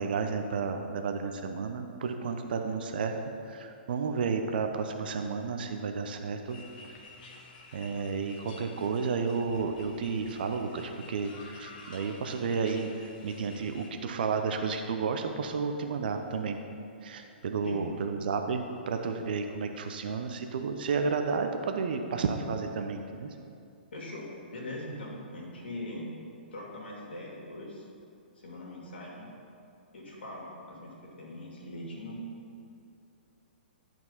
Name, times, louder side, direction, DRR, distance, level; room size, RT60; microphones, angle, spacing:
voice 1, 0.0-3.2 3.4-6.6 7.7-12.9 13.2-16.6 17.0-23.3, right 5 dB, 60° right, 5 dB, 0.8 m, -32 dB
sound 1, 6.5-13.9, left 3 dB, 50° left, 1.3 m, -50 dB
voice 2, 23.9-26.1 26.5-27.9 28.4-29.3 29.9-32.2, left 1 dB, 75° left, -3 dB, 2.3 m, -41 dB
11.0 x 4.6 x 5.5 m, 2.6 s
figure-of-eight pair, 120°, 6 cm